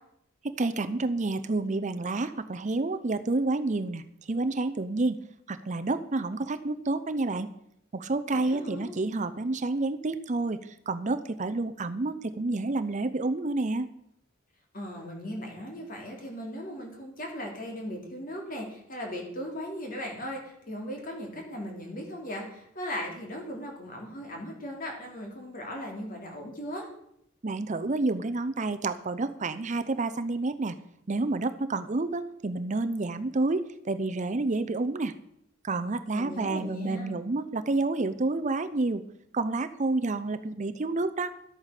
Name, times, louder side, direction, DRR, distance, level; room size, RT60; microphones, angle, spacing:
voice 1, 0.4-4.0 4.3-5.2 5.5-7.5 7.9-13.9 27.4-30.8 31.1-35.1 35.6-39.0 39.3-41.3, right 3 dB, 40° right, 11 dB, 0.6 m, -29 dB
voice 2, 8.3-9.0 14.7-26.9 36.1-37.2, equal, 45° left, 1 dB, 3.4 m, -38 dB
12.5 x 8.6 x 6.6 m, 0.75 s
head